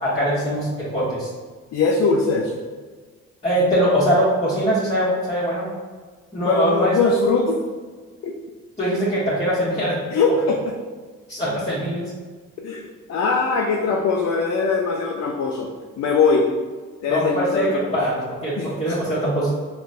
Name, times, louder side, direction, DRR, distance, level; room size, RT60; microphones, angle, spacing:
voice 1, 0.0-1.3 3.4-5.7 6.3-7.0 8.8-10.1 11.3-12.1 17.1-17.7 17.9-19.5, equal, 20° left, -10 dB, 1.1 m, -22 dB
voice 2, 1.7-2.6 6.5-7.6 8.2-8.3 10.1-10.8 12.6-15.7 16.0-16.5 17.0-18.0 18.6-19.0, left 4 dB, 55° left, 1 dB, 0.4 m, -21 dB
3.8 x 2.2 x 2.5 m, 1.4 s
supercardioid pair, 65°, 33 cm